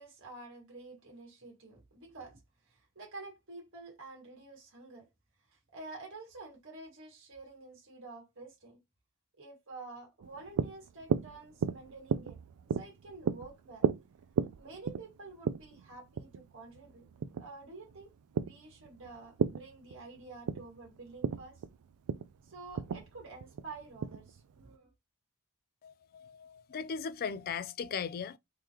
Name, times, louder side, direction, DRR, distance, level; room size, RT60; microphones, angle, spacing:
voice 1, 0.0-2.4 2.6-5.1 5.5-8.8 9.4-12.4 12.7-13.9 14.6-17.1 17.4-21.6 22.4-24.9, right 3 dB, 60° right, 1.7 m, -49 dB
sound 1, 10.2-24.7, right 7 dB, 80° right, 0.3 m, -36 dB
voice 2, 25.8-28.4, left 6 dB, 45° left, 0.3 m, -38 dB
3.7 x 3.1 x 2.8 m
head